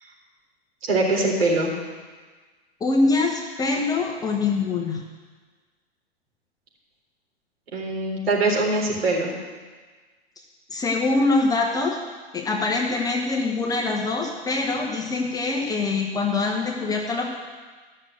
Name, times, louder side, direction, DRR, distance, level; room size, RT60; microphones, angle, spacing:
voice 1, 0.8-1.7 7.7-9.3, right 2 dB, 60° right, -2 dB, 3.8 m, -22 dB
voice 2, 2.8-5.0 10.7-12.0 12.3-17.3, left 3 dB, 10° left, -1 dB, 1.0 m, -24 dB
13.5 x 6.6 x 7.8 m, 1.4 s
figure-of-eight pair, 105°, 33 cm